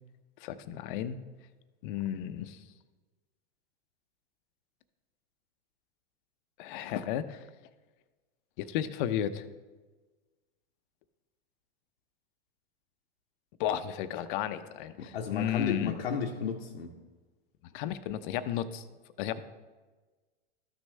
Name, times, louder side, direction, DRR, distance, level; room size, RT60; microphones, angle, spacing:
voice 1, 0.4-1.2 1.8-2.6 6.6-7.4 8.6-9.5 13.6-15.9 17.7-18.8 19.2-19.4, left 10 dB, 55° left, 12 dB, 0.7 m, -33 dB
voice 2, 15.0-16.9, left 6 dB, 85° left, 0 dB, 0.9 m, -33 dB
13.0 x 6.3 x 3.3 m, 1.3 s
hypercardioid pair, 120°, 31 cm